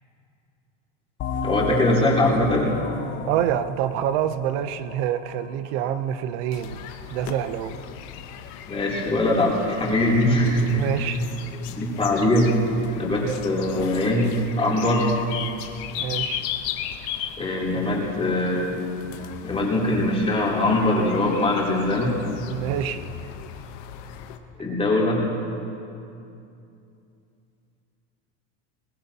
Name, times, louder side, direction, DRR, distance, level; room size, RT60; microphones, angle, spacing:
sound 1, 1.2-6.5, left 4 dB, 35° left, 0.7 m, -32 dB
voice 1, 1.4-2.8 8.7-11.0 11.7-12.6 12.9-15.1 17.4-18.9 19.4-22.2 24.6-25.2, left 1 dB, 15° left, -5 dB, 3.3 m, -22 dB
voice 2, 3.3-7.8 10.8-11.2 13.2-13.4 16.0-16.5 22.5-23.1, right 10 dB, 65° right, 11 dB, 0.9 m, -27 dB
sound 2, 6.5-24.4, left 10 dB, 65° left, 1.1 m, -37 dB
21.5 x 18.5 x 2.9 m, 2.6 s
supercardioid pair, 135°, 35 cm